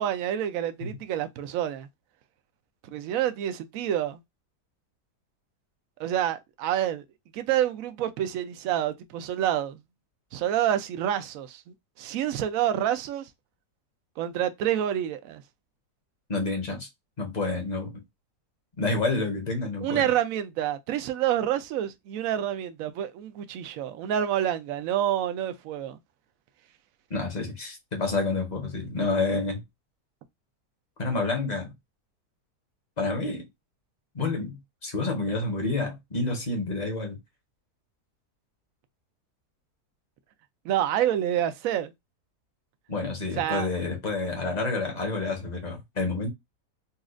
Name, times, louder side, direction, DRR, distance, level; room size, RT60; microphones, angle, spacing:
voice 1, 0.0-1.9 2.8-4.2 6.0-7.0 7.3-9.8 10.3-13.3 14.2-15.4 19.8-26.0 40.6-41.9 43.4-43.7, right 11 dB, 70° right, 0.9 m, -28 dB
voice 2, 16.3-16.9 17.2-18.0 18.8-20.1 27.1-29.6 31.0-31.7 33.0-33.5 34.1-37.2 42.9-46.3, left 3 dB, 30° left, 0.9 m, -29 dB
4.2 x 2.4 x 2.4 m
omnidirectional pair, 1.7 m